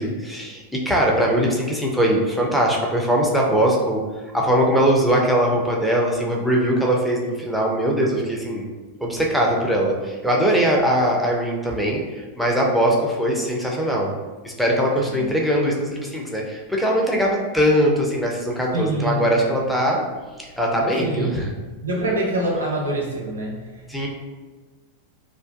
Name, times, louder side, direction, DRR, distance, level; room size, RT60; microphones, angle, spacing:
voice 1, 0.0-4.0 4.3-8.7 9.0-14.1 14.4-20.0 20.4-21.5 23.9-24.1, equal, ahead, -2 dB, 0.4 m, -21 dB
voice 2, 18.7-19.6 21.0-21.5 21.8-23.9, right 1 dB, 70° right, -2 dB, 0.6 m, -26 dB
2.4 x 2.1 x 2.4 m, 1.3 s
figure-of-eight pair, 90°, 0 cm